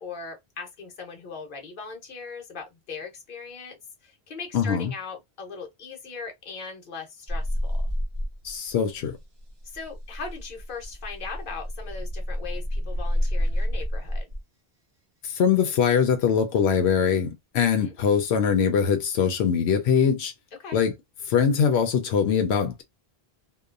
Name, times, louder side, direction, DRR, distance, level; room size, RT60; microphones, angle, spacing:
voice 1, 0.0-7.8 9.6-14.3 17.6-18.0 20.6-20.8, left 4 dB, 55° left, 1.0 m, -39 dB
voice 2, 4.5-4.9 8.4-9.2 15.2-20.3 20.7-20.9 21.2-22.8, left 7 dB, 90° left, 0.9 m, -22 dB
sound 1, 7.3-8.7 9.0-14.4 16.1-16.6, equal, 30° right, 0.6 m, -29 dB
2.8 x 2.2 x 2.3 m
omnidirectional pair, 1.0 m